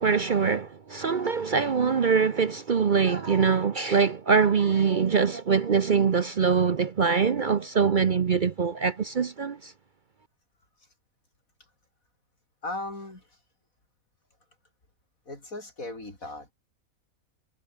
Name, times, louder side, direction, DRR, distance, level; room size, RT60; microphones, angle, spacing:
voice 1, 0.0-9.7, right 6 dB, 45° right, 0.7 m, -23 dB
voice 2, 12.6-13.2 15.3-16.5, left 2 dB, 85° left, 6.6 m, -37 dB
omnidirectional pair, 1.4 m